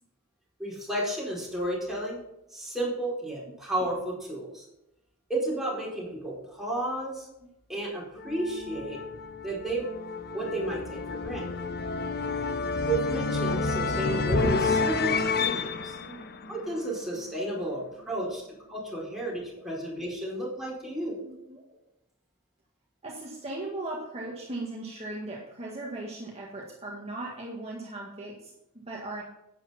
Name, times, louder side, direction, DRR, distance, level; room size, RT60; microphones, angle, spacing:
voice 1, 0.6-2.2 2.5-4.6 5.3-7.3 7.7-9.0 9.4-9.9 10.3-11.5 12.8-16.0 16.5-18.4 18.7-21.2, right 1 dB, ahead, -5 dB, 4.7 m, -32 dB
sound 1, 8.2-17.2, left 4 dB, 50° left, 0.9 m, -30 dB
voice 2, 16.0-16.3 18.1-18.4 19.6-19.7 21.2-21.8 23.0-29.2, right 2 dB, 30° right, -3 dB, 1.9 m, -38 dB
11.5 x 9.4 x 4.4 m, 0.87 s
head